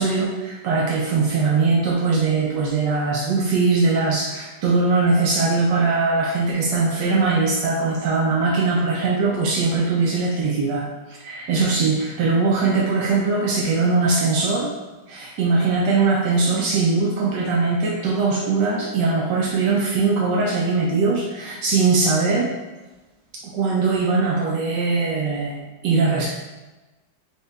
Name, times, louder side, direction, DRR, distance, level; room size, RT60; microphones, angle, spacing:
voice 1, 0.0-14.7 15.1-22.5 23.5-26.3, right 4 dB, 80° right, -3 dB, 1.2 m, -21 dB
4.2 x 2.8 x 3.3 m, 1.1 s
omnidirectional pair, 1.9 m